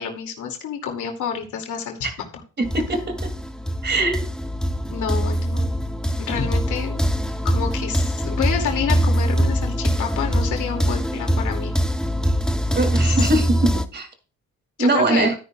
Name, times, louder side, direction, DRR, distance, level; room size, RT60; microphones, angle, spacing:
voice 1, 0.0-2.3 4.9-5.7 6.2-7.0 7.4-11.7 13.1-13.2 14.8-15.3, left 7 dB, 80° left, 3 dB, 2.4 m, -28 dB
sound 1, 2.6-13.8, equal, ahead, 0.7 m, -23 dB
voice 2, 2.6-3.3 3.8-4.3 12.7-14.1 14.8-15.4, right 2 dB, 35° right, 6 dB, 2.5 m, -21 dB
12.5 x 9.7 x 2.3 m, 0.36 s
cardioid pair, 90°, 30 cm